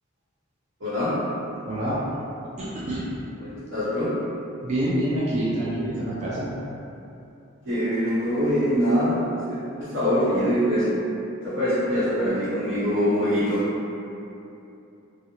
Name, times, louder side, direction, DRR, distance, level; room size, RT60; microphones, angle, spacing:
voice 1, 0.8-1.2 3.4-4.1 7.7-10.9 11.4-13.6, equal, 70° right, -15 dB, 0.8 m, -24 dB
voice 2, 1.7-2.0 2.6-3.0 4.6-6.5, right 1 dB, 35° right, -9 dB, 0.3 m, -26 dB
2.4 x 2.0 x 2.8 m, 2.8 s
head